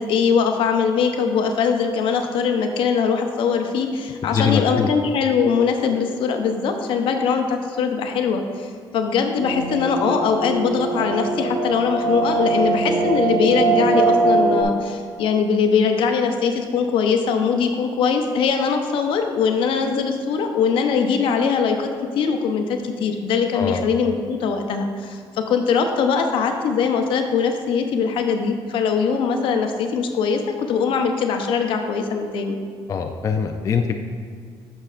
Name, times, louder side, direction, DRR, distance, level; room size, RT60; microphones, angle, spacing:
voice 1, 0.0-32.6, left 6 dB, 75° left, 5 dB, 0.7 m, -21 dB
voice 2, 4.3-4.9 23.5-23.8 32.9-34.0, left 6 dB, 35° left, 4 dB, 0.4 m, -22 dB
sound 1, 9.4-14.6, right 3 dB, 60° right, 1.3 m, -21 dB
9.9 x 6.5 x 2.4 m, 2.1 s
cardioid pair, 135°, 9 cm